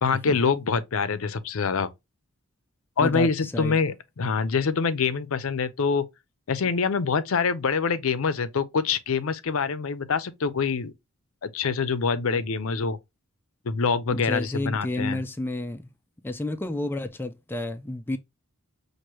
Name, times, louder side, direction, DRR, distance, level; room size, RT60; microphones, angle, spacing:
voice 1, 0.0-1.9 3.0-6.0 6.5-10.9 11.4-13.0 13.6-15.2, left 5 dB, 70° left, 0.5 m, -25 dB
voice 2, 3.0-3.8 14.1-15.8 16.2-18.2, left 2 dB, 10° left, 0.3 m, -30 dB
6.1 x 2.6 x 3.0 m
head